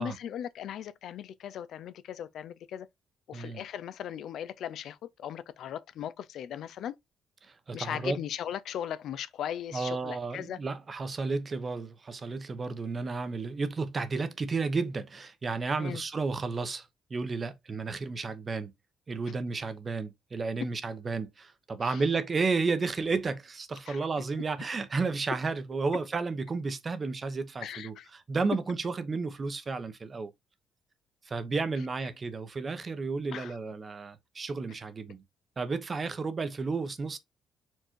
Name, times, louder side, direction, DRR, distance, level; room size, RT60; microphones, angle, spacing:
voice 1, 0.0-2.9 3.3-7.0 7.7-10.6 15.8-16.0 21.8-22.0 23.9-24.0 27.6-28.1 33.3-33.6, left 9 dB, 75° left, 0.4 m, -38 dB
voice 2, 7.4-8.2 9.7-18.7 19.1-30.3 31.2-35.2 35.6-37.2, right 4 dB, 35° right, 0.8 m, -32 dB
4.5 x 2.5 x 4.5 m
cardioid pair, 90°, 0 cm